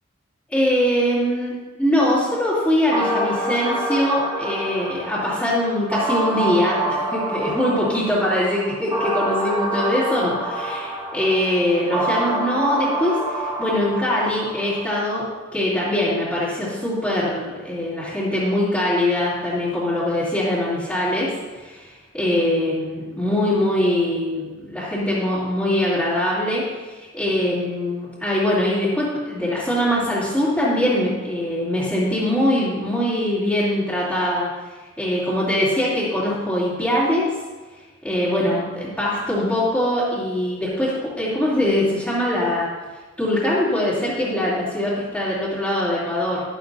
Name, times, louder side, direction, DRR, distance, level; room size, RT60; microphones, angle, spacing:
voice 1, 0.5-15.3 15.5-34.5 35.0-37.3 38.0-42.7 43.2-46.4, left 1 dB, 5° left, -12 dB, 2.8 m, -22 dB
sound 1, 2.9-14.9, right 1 dB, 20° right, 1.7 m, -27 dB
13.0 x 12.0 x 2.7 m, 1.3 s
head